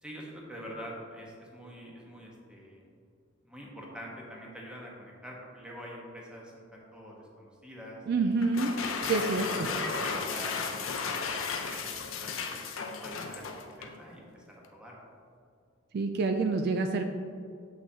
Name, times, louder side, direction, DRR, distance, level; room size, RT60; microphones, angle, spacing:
voice 1, 0.0-2.9 3.5-8.0 8.7-9.1 9.4-11.4 11.7-12.6 13.0-15.0, equal, 5° right, -3 dB, 1.0 m, -45 dB
voice 2, 8.1-8.7 9.0-9.7 15.9-17.0, right 3 dB, 50° right, 6 dB, 0.3 m, -27 dB
sound 1, 8.4-14.0, left 5 dB, 75° left, 0.6 m, -34 dB
7.1 x 6.1 x 2.7 m, 2.3 s
head